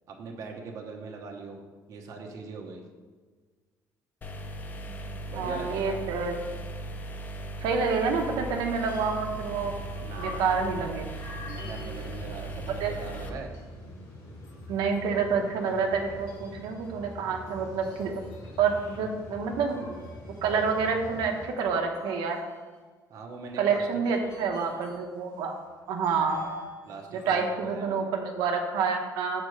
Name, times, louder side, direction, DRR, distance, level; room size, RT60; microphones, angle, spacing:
voice 1, 0.1-1.6 1.9-2.8 5.3-6.0 10.0-10.5 11.5-13.5 23.1-23.9 26.8-28.1, right 4 dB, 45° right, 1 dB, 1.0 m, -41 dB
sound 1, 4.2-13.3, right 1 dB, 25° left, 0.5 m, -38 dB
voice 2, 5.3-6.3 7.6-9.7 10.2-11.1 12.8-12.9 14.7-18.2 18.6-20.0 20.4-22.4 23.6-25.5 25.9-26.4 27.1-29.4, right 5 dB, 85° right, 2 dB, 0.9 m, -28 dB
sound 2, 7.8-10.5 10.8-13.9 14.3-19.0 19.7-22.7 23.5-25.0 25.3-26.8 27.1-27.5, left 2 dB, 50° left, 2.2 m, -47 dB
sound 3, 9.2-21.5, left 1 dB, 90° left, 2.0 m, -45 dB
6.4 x 4.4 x 6.4 m, 1.5 s
cardioid pair, 170°, 7 cm